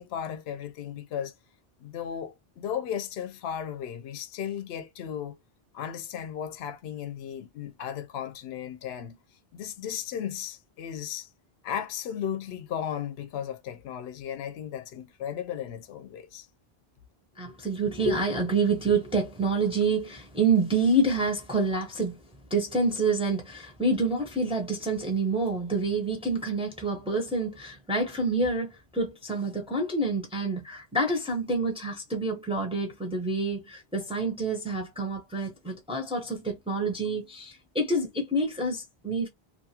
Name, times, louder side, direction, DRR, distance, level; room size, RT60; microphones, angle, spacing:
voice 1, 0.0-1.3 1.8-5.4 5.7-9.2 9.5-11.3 11.6-16.5, left 9 dB, 80° left, 0.8 m, -35 dB
voice 2, 17.4-22.2 22.5-39.3, right 3 dB, 5° right, 0.7 m, -27 dB
2.6 x 2.3 x 2.8 m
omnidirectional pair, 1.0 m